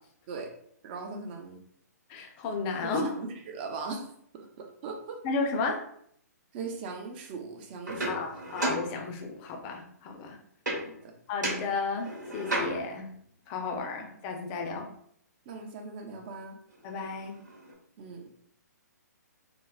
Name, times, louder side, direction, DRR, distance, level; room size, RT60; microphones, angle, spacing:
voice 1, 0.8-1.6 2.8-4.1 4.3-5.2 6.5-8.4 10.8-11.1 15.5-16.6 18.0-18.2, right 4 dB, 35° right, 3 dB, 0.5 m, -39 dB
voice 2, 2.1-3.1 5.2-5.8 8.1-10.4 11.3-13.1 13.5-14.9 16.8-17.3, left 4 dB, 30° left, 3 dB, 0.5 m, -33 dB
sound 1, 7.9-9.5 10.7-11.1 11.4-13.1 16.3-16.4 16.7-17.7, right 1 dB, 85° right, 1.1 m, -34 dB
3.7 x 2.0 x 2.3 m, 0.66 s
figure-of-eight pair, 135°, 9 cm